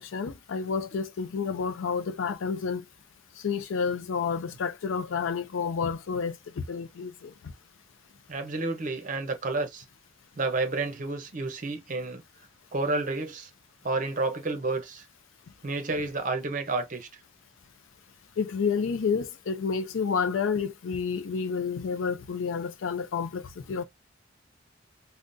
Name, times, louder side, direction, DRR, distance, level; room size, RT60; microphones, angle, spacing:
voice 1, 0.0-2.8 3.4-7.3 18.4-23.8, left 5 dB, 80° left, 0.4 m, -30 dB
voice 2, 8.3-9.8 10.4-12.2 12.7-13.5 13.8-15.0 15.6-17.1, right 3 dB, 40° right, 0.7 m, -30 dB
3.6 x 2.1 x 2.6 m
head